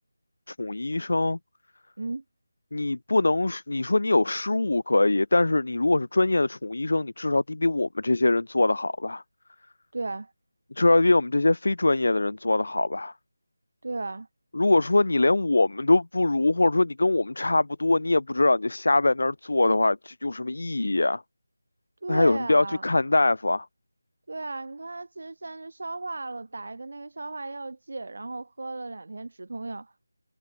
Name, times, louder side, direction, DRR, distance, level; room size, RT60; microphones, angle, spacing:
voice 1, 0.5-1.4 2.7-9.2 10.7-13.1 14.5-21.2 22.1-23.7, left 2 dB, 60° left, 4.6 m, -23 dB
voice 2, 9.9-10.3 13.8-14.3 22.0-22.8 24.3-29.9, right 3 dB, 50° right, 3.1 m, -35 dB
figure-of-eight pair, 180°, 0 cm